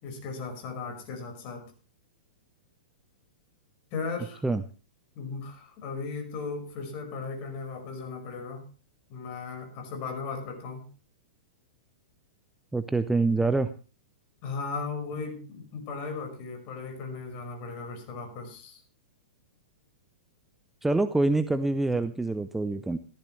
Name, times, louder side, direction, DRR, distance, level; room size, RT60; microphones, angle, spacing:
voice 1, 0.0-1.6 3.9-4.5 5.2-8.6 9.1-10.8 14.4-18.8, left 4 dB, 40° left, 4 dB, 5.3 m, -36 dB
voice 2, 12.7-13.7 20.8-23.0, right 2 dB, 5° right, 11 dB, 0.6 m, -25 dB
16.0 x 13.5 x 3.3 m, 0.35 s
hypercardioid pair, 140°, 5 cm